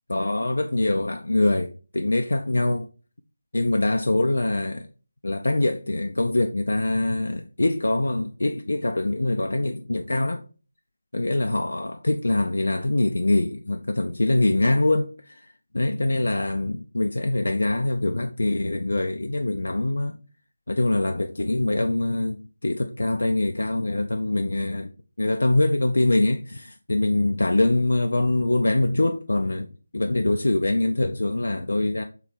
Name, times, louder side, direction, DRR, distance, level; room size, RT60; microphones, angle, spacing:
voice 1, 0.1-2.9 3.5-4.9 5.2-10.4 11.1-15.4 15.7-20.2 20.7-24.9 25.2-32.0, left 2 dB, 60° left, 0.4 m, -24 dB
3.7 x 3.2 x 4.4 m
figure-of-eight pair, 160°, 0 cm